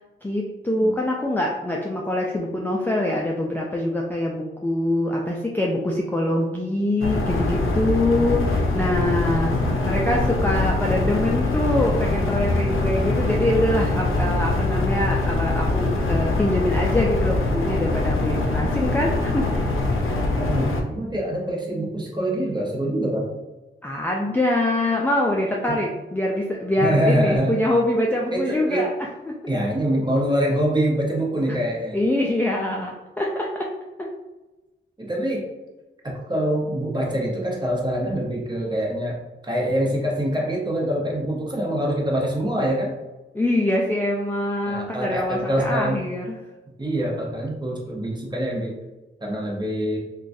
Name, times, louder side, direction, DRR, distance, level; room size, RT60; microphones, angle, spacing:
voice 1, 0.2-19.5 23.8-29.4 31.5-31.6 31.9-33.7 34.0-34.1 43.3-46.4, left 1 dB, 10° left, -2 dB, 0.3 m, -24 dB
sound 1, 7.0-20.8, left 2 dB, 80° left, 0.5 m, -23 dB
voice 2, 20.4-23.2 25.7-25.8 26.8-27.6 28.3-28.9 29.5-32.0 35.0-35.5 36.0-39.2 39.4-42.9 44.6-46.0 46.8-48.7 49.2-50.0, right 1 dB, 20° right, -2 dB, 0.9 m, -24 dB
3.7 x 2.3 x 2.6 m, 1.1 s
wide cardioid pair, 85°, 21 cm